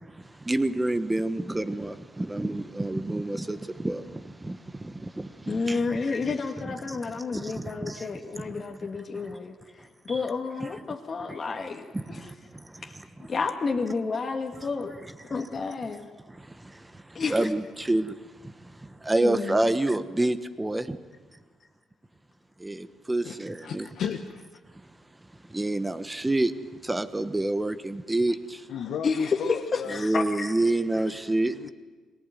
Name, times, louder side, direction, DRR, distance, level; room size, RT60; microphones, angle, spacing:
voice 1, 0.0-6.0 6.7-8.8 9.1-9.4 10.1-10.2 10.6-10.7 11.9-12.8 15.3-15.4 16.3-21.0 22.6-23.9 25.5-28.7 29.9-31.7, right 2 dB, 15° right, 1.3 m, -29 dB
voice 2, 5.5-9.5 10.1-12.2 12.8-12.9 13.3-14.9 15.3-16.1 17.1-17.4 19.2-19.6 29.0-30.5, left 4 dB, 40° left, 1.9 m, -30 dB
voice 3, 23.2-24.5 28.7-30.0 31.5-31.7, left 8 dB, 75° left, 1.4 m, -34 dB
22.5 x 19.0 x 9.2 m
cardioid pair, 90°, 0 cm